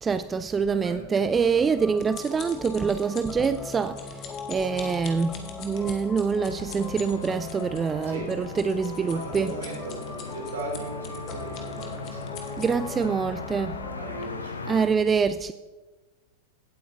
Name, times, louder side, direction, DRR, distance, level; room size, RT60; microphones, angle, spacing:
voice 1, 0.0-4.1 4.5-9.5 12.6-13.8 14.7-15.5, right 5 dB, 20° right, 0.3 m, -25 dB
voice 2, 0.6-1.1 4.6-5.0 5.6-5.9 8.1-8.3 9.0-12.4 12.8-13.2 13.9-14.9, right 2 dB, 65° right, 2.9 m, -39 dB
sound 1, 1.3-14.3, left 4 dB, 20° left, 0.7 m, -40 dB
sound 2, 1.4-13.1 13.7-13.9 14.2-14.3, left 7 dB, 35° left, 1.5 m, -45 dB
sound 3, 6.4-14.9, left 4 dB, 75° left, 0.7 m, -39 dB
17.0 x 8.3 x 2.7 m
figure-of-eight pair, 90°, 0 cm